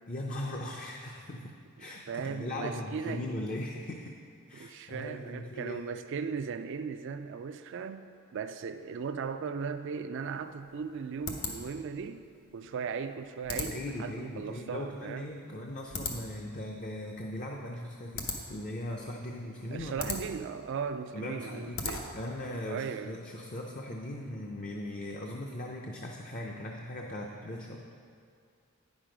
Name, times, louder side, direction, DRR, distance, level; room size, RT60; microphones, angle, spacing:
voice 1, 0.1-1.5 1.8-4.2 4.5-5.8 13.5-20.1 21.1-21.9 22.1-27.9, left 1 dB, 40° left, 0 dB, 0.6 m, -39 dB
voice 2, 2.1-3.3 4.5-15.3 19.7-22.1 22.7-23.2, right 6 dB, 60° right, 8 dB, 0.4 m, -37 dB
sound 1, 10.2-22.4, left 4 dB, 70° left, 1.0 m, -41 dB
9.5 x 6.2 x 5.0 m, 2.3 s
head